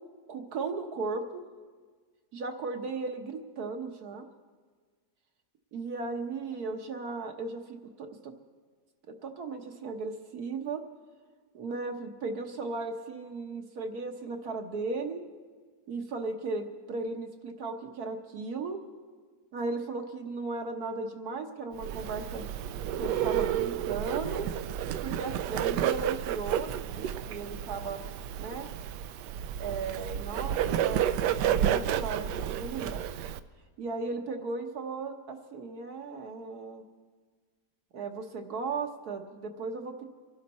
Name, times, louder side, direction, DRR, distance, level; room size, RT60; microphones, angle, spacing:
voice 1, 0.3-1.5 2.3-4.2 5.7-8.3 9.2-10.8 11.5-15.2 15.9-18.8 19.5-22.5 23.0-24.5 25.0-28.0 28.4-28.7 29.6-33.1 33.8-36.8 37.9-40.0, right 4 dB, 65° right, 4 dB, 1.7 m, -36 dB
Bird, 21.8-33.4, right 10 dB, 85° right, 1.2 m, -31 dB
25.5 x 11.5 x 4.2 m, 1.5 s
omnidirectional pair, 1.8 m